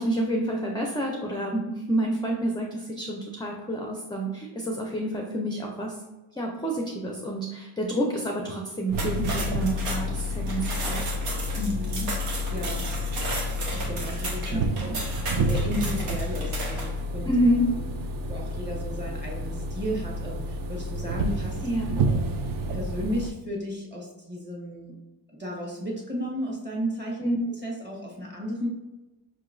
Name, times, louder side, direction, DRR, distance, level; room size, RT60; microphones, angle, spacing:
voice 1, 0.0-6.0 6.4-11.0 14.5-15.0 17.3-17.6 21.6-22.0 27.2-27.4, right 1 dB, 10° left, 0 dB, 0.4 m, -28 dB
sound 1, 8.9-23.3, equal, 45° right, 0.5 m, -30 dB
sound 2, 8.9-17.0, right 2 dB, 85° right, 1.1 m, -34 dB
voice 2, 11.6-12.1 12.5-12.9 13.7-17.3 17.8-17.9 18.3-21.6 22.0-22.4 22.7-25.0 25.4-28.7, equal, 20° right, -2 dB, 1.3 m, -34 dB
5.2 x 2.9 x 2.5 m, 1.1 s
cardioid pair, 90°, 50 cm